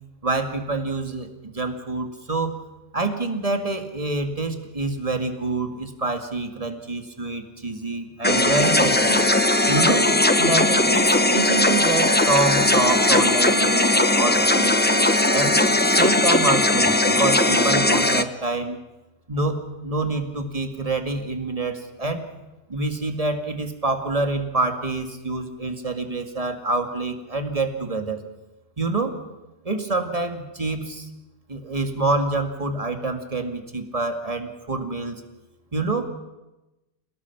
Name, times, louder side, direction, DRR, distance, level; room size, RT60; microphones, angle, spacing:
voice 1, 0.2-2.6 2.9-9.2 9.7-15.6 15.9-18.8 19.3-22.3 22.7-28.2 28.8-29.2 29.6-31.1 31.5-35.2 35.7-36.1, right 2 dB, 35° right, 6 dB, 2.1 m, -26 dB
sound 1, 8.2-18.2, left 2 dB, 10° left, 0.7 m, -19 dB
28.0 x 18.5 x 6.0 m, 1.0 s
omnidirectional pair, 1.1 m